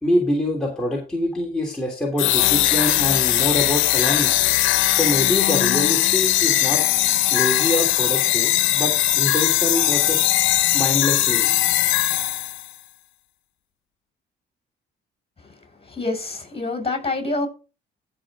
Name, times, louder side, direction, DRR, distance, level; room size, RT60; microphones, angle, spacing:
voice 1, 0.0-4.4 4.9-6.8 7.3-10.3 10.7-11.5, left 1 dB, 5° left, 3.1 m, -25 dB
sound 1, 2.2-12.7, left 14 dB, 90° left, 0.8 m, -19 dB
voice 2, 15.8-17.5, left 2 dB, 30° left, 6.1 m, -27 dB
15.0 x 5.9 x 3.7 m
cardioid pair, 90°, 20 cm